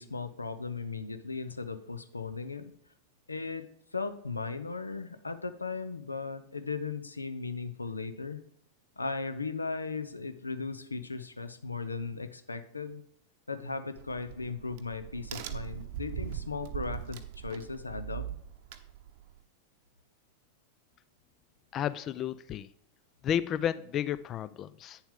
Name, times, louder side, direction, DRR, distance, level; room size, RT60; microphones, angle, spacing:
voice 1, 0.0-2.7 3.3-8.4 9.0-13.0 13.5-18.4, left 4 dB, 80° left, 11 dB, 0.7 m, -37 dB
Crack, 14.0-19.4, right 12 dB, 50° right, 0.8 m, -41 dB
voice 2, 21.7-22.7 23.2-25.0, left 10 dB, 30° left, 15 dB, 0.4 m, -32 dB
9.0 x 7.1 x 3.7 m, 0.70 s
figure-of-eight pair, 90°, 0 cm